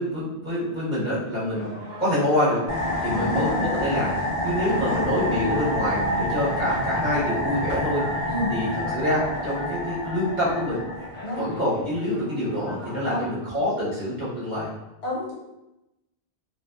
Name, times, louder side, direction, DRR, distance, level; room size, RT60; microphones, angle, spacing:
voice 1, 0.0-1.7 2.0-2.6 3.0-4.1 4.4-8.2 8.5-10.8 11.4-14.7, left 1 dB, 45° right, -8 dB, 1.0 m, -26 dB
sound 1, 1.3-13.1, left 1 dB, 15° left, 0.4 m, -42 dB
sound 2, 2.7-11.5, left 1 dB, 20° right, 0.9 m, -28 dB
voice 2, 3.1-3.7 4.6-5.0 8.3-8.5 11.2-11.5 13.1-13.3 15.0-15.3, left 1 dB, 75° left, -4 dB, 1.0 m, -30 dB
2.5 x 2.4 x 2.3 m, 0.94 s
omnidirectional pair, 1.1 m